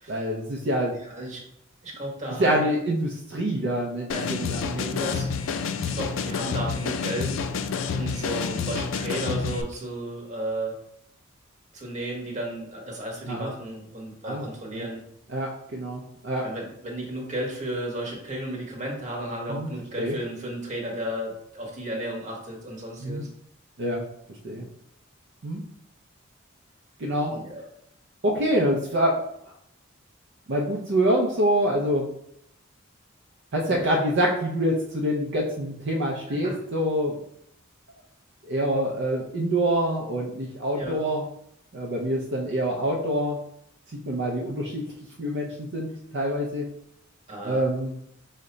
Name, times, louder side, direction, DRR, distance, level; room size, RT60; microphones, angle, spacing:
voice 1, 0.1-0.9 2.4-4.6 13.3-13.5 14.2-14.5 14.7-14.9 15.3-16.4 19.5-19.7 20.0-20.2 23.0-23.2 23.8-24.0 24.4-24.7 25.4-25.6 27.0-27.4 28.2-29.2 30.5-32.1 33.5-37.2 38.5-41.2 41.7-43.4 43.9-44.9 45.2-46.6 47.4-48.0, equal, 60° right, -2 dB, 0.5 m, -26 dB
voice 2, 1.1-1.4 1.8-2.7 4.1-7.3 7.9-10.8 11.7-15.0 16.4-23.3 27.3-27.6 33.7-33.8 36.4-36.6 40.8-41.0 47.3-47.6, right 1 dB, 35° right, -1 dB, 1.0 m, -34 dB
sound 1, 4.1-9.6, left 5 dB, 65° left, 0.3 m, -29 dB
4.9 x 2.2 x 3.9 m, 0.74 s
head